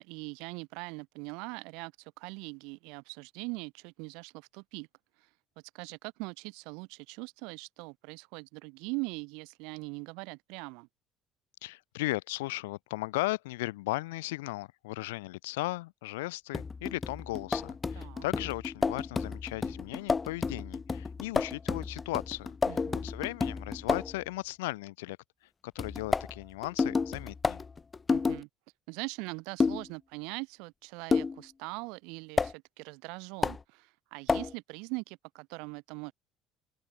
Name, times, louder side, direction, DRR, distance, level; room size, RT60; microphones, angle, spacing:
voice 1, 0.0-4.9 5.2-5.3 5.7-10.9 17.9-18.3 22.7-23.1 28.1-28.5 28.9-36.1, right 30 dB, 75° right, 5.0 m, -41 dB
voice 2, 11.6-25.2 25.6-27.6, left 20 dB, 80° left, 6.9 m, -36 dB
sound 1, 16.5-24.2 25.8-28.4 29.6-29.9 31.1-31.4 32.4-32.5 33.4-33.6 34.3-34.5, left 4 dB, 30° left, 1.4 m, -31 dB
open air
hypercardioid pair, 65°, 0 cm